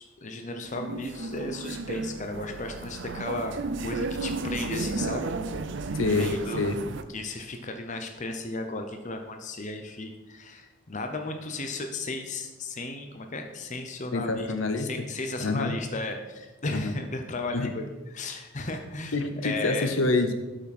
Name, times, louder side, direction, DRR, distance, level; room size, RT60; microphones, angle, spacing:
voice 1, 0.0-3.5 3.8-5.3 6.1-6.7 7.1-14.5 14.8-17.8 18.1-19.9, left 2 dB, 35° left, 5 dB, 0.7 m, -35 dB
sound 1, 0.6-7.0, right 3 dB, 55° right, 0.6 m, -33 dB
voice 2, 5.9-6.8 14.1-14.9 15.4-15.8 16.7-17.0 17.5-17.7 19.1-20.3, left 3 dB, 65° left, 8 dB, 0.8 m, -26 dB
12.5 x 5.9 x 4.3 m, 1.1 s
head